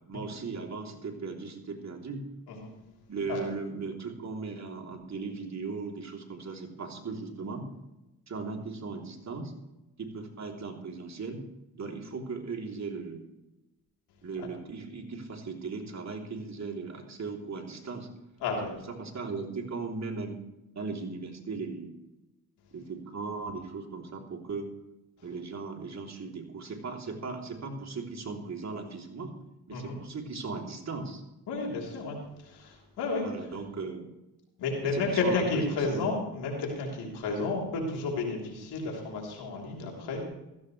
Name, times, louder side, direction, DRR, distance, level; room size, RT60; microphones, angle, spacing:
voice 1, 0.1-2.2 3.1-7.7 8.3-9.5 10.0-11.4 11.7-13.3 14.2-18.1 18.9-20.4 20.7-21.9 22.7-24.7 25.2-29.3 29.7-31.2 33.2-34.1 34.8-36.0 39.8-40.2, right 4 dB, 45° right, 1 dB, 3.2 m, -37 dB
voice 2, 18.4-18.7 29.7-30.0 31.5-33.3 34.6-40.2, left 3 dB, 90° left, -1 dB, 3.5 m, -32 dB
16.0 x 15.0 x 3.3 m, 0.97 s
supercardioid pair, 65°, 39 cm